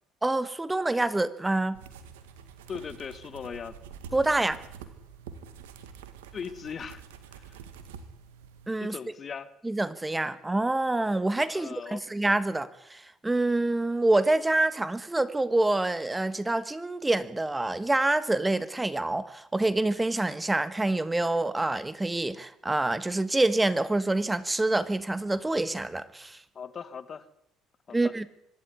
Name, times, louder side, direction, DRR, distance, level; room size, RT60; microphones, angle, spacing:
voice 1, 0.2-1.8 4.1-4.6 8.7-9.0 9.6-26.4 27.9-28.2, right 2 dB, 15° right, 1.5 m, -26 dB
sound 1, 1.7-8.7, right 7 dB, 85° right, 2.0 m, -47 dB
voice 2, 2.7-3.8 6.3-7.0 7.3-7.6 8.8-9.5 11.5-12.1 26.5-27.3 27.9-28.1, left 6 dB, 45° left, 1.6 m, -39 dB
24.5 x 12.0 x 9.7 m
hypercardioid pair, 65°, 0 cm